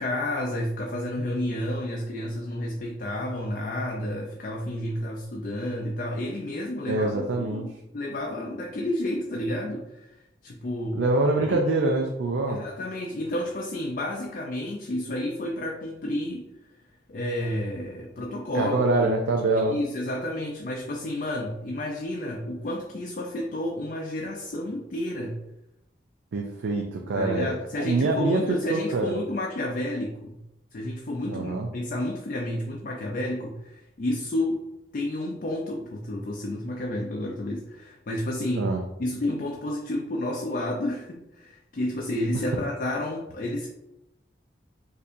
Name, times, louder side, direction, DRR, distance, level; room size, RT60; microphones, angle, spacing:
voice 1, 0.0-10.1 10.4-11.1 11.4-11.9 12.5-16.5 17.1-19.1 19.7-25.4 27.1-30.4 30.7-34.6 34.9-38.7 39.0-43.7, left 1 dB, 45° left, 0 dB, 0.4 m, -31 dB
voice 2, 6.9-7.7 10.9-12.6 18.5-19.8 26.3-28.4 28.7-29.2 31.3-31.7 38.5-38.8, right 2 dB, 85° right, 1 dB, 0.4 m, -25 dB
4.3 x 2.6 x 2.5 m, 0.88 s
head